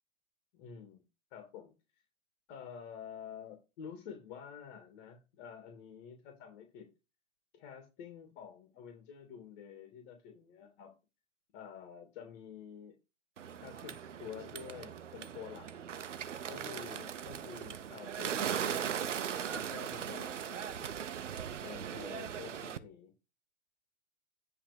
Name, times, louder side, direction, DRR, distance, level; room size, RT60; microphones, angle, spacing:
voice 1, 0.5-1.0 1.3-1.7 2.5-6.9 7.5-10.9 11.5-12.9 13.6-15.7 16.5-18.8 19.5-20.9 21.6-23.1, left 8 dB, 45° left, 4 dB, 2.7 m, -49 dB
Bird, 13.4-22.8, right 8 dB, 85° right, 1.0 m, -39 dB
10.0 x 3.9 x 5.3 m, 0.29 s
hypercardioid pair, 120°, 36 cm